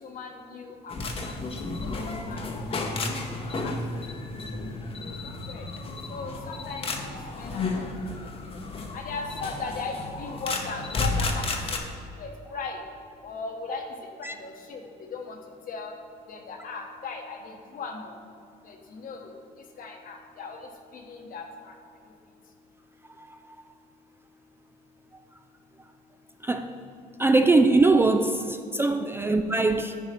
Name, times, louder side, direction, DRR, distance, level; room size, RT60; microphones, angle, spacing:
voice 1, 0.0-1.3 1.8-2.0 2.3-2.4 2.9-3.0 3.6-3.7 5.2-5.6 6.1-6.9 7.4-7.9 8.9-11.9 12.2-12.8 13.2-13.8 14.2-14.8 15.1-15.4 15.7-15.9 16.3-18.2 18.6-19.3 19.8-20.6 20.9-21.7, left 4 dB, 55° left, 3 dB, 1.2 m, -38 dB
sound 1, 0.9-11.8, left 3 dB, 35° left, 0.8 m, -32 dB
voice 2, 23.2-23.6 26.4-26.7 27.2-30.0, right 3 dB, 15° right, 6 dB, 0.3 m, -22 dB
9.5 x 4.8 x 4.3 m, 2.5 s
cardioid pair, 110°, 17 cm